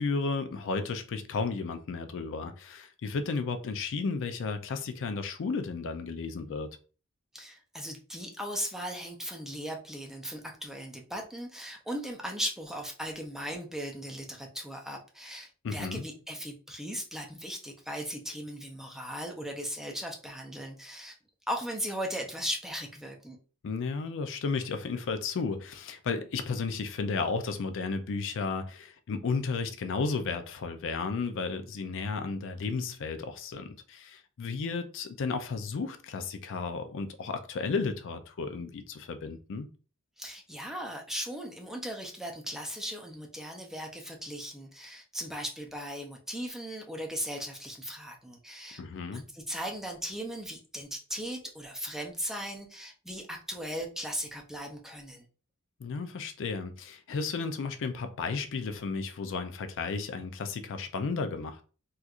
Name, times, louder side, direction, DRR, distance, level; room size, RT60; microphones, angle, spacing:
voice 1, 0.0-6.7 15.6-16.0 23.6-39.7 48.8-49.3 55.8-61.6, left 4 dB, 60° left, 0.4 m, -33 dB
voice 2, 7.3-21.2 21.5-23.4 40.2-48.8 49.1-55.3, equal, ahead, 0.5 m, -38 dB
4.3 x 2.4 x 2.4 m
head